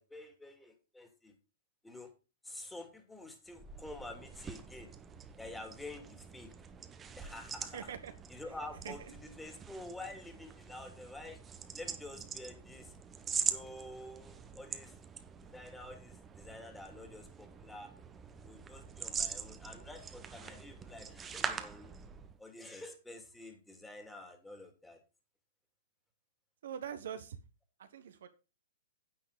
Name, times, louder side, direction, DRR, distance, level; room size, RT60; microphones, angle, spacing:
voice 1, 0.0-1.3 1.8-2.1 2.4-4.9 5.4-6.5 7.2-7.9 8.3-11.4 11.7-12.9 13.4-14.9 15.4-17.9 18.3-21.9 22.4-25.0, left 2 dB, 5° left, 2.8 m, -48 dB
sound 1, 3.5-22.4, right 6 dB, 20° right, 1.1 m, -43 dB
voice 2, 7.7-8.1 8.8-9.1 26.6-27.4 27.8-28.3, right 8 dB, 65° right, 1.2 m, -43 dB
9.9 x 9.0 x 4.0 m
hypercardioid pair, 115°, 0 cm